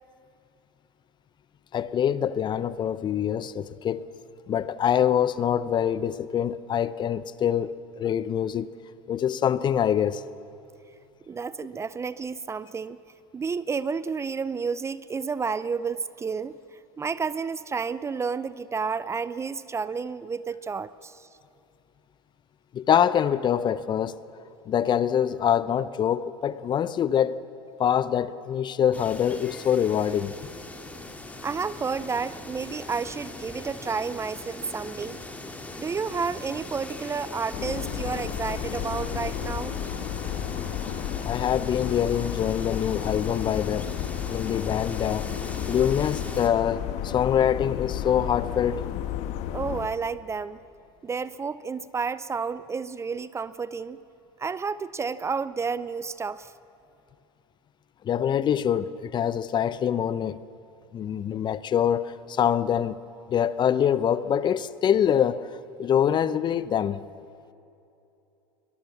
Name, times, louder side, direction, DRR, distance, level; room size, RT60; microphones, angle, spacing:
voice 1, 1.7-4.1 4.5-8.7 9.1-10.2 22.7-24.2 24.7-27.4 27.8-30.3 41.2-43.9 44.3-45.3 45.7-48.9 58.0-60.4 60.9-63.0 63.3-65.5 65.8-67.0, left 9 dB, 30° left, 0.7 m, -25 dB
voice 2, 11.3-13.0 13.3-16.5 17.0-21.3 31.4-35.2 35.8-39.8 49.5-50.6 51.0-54.0 54.4-56.5, right 5 dB, 20° right, 0.5 m, -31 dB
sound 1, 28.9-46.5, left 2 dB, 10° left, 2.4 m, -40 dB
sound 2, 37.5-49.9, left 11 dB, 50° left, 1.3 m, -32 dB
23.5 x 20.5 x 7.2 m
hypercardioid pair, 90°, 14 cm